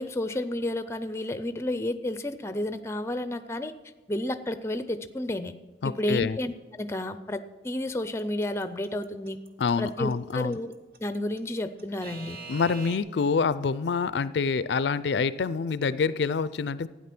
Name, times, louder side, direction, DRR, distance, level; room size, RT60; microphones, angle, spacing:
voice 1, 0.0-3.7 4.1-5.5 5.8-6.5 6.8-9.4 9.8-10.7 11.0-12.4, left 1 dB, 15° left, 12 dB, 0.5 m, -31 dB
voice 2, 5.8-6.4 9.6-10.6 12.5-16.9, left 5 dB, 70° left, 17 dB, 0.4 m, -26 dB
Alarm / Clock, 8.2-13.0, right 4 dB, 50° right, 1.2 m, -43 dB
12.5 x 9.6 x 6.0 m, 1.3 s
head